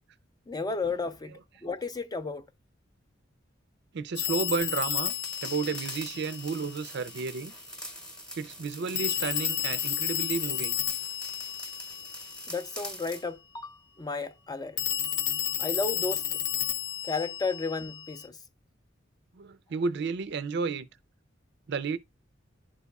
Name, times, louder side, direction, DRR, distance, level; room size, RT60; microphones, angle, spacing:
voice 1, 0.5-1.3 1.6-2.4 12.5-14.8 15.6-16.4 17.0-18.4, left 4 dB, 20° left, 0.5 m, -33 dB
voice 2, 3.9-5.1 5.4-7.5 8.4-10.7 19.4-20.9 21.7-22.0, right 5 dB, 60° right, 0.4 m, -32 dB
Telephone, 4.2-6.8 9.0-12.6 14.8-18.3, left 10 dB, 70° left, 0.6 m, -32 dB
sound 1, 5.1-13.3, equal, 5° left, 0.9 m, -43 dB
11.0 x 4.1 x 2.3 m
head